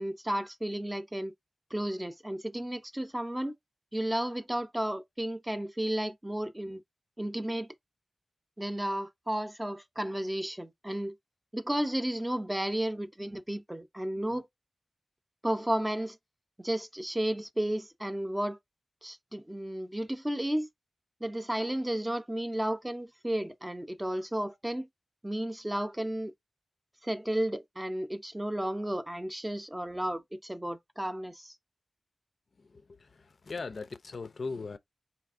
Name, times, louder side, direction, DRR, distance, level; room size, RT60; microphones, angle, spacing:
voice 1, 0.0-1.3 1.7-3.5 3.9-6.8 7.2-7.7 8.6-11.2 11.5-14.5 15.4-16.2 16.6-18.6 19.0-20.7 21.2-24.9 25.2-26.3 27.0-31.6, right 1 dB, 15° right, 0.6 m, -33 dB
voice 2, 32.6-34.8, left 4 dB, 65° left, 0.4 m, -39 dB
4.1 x 3.3 x 2.4 m
wide cardioid pair, 75°, 0 cm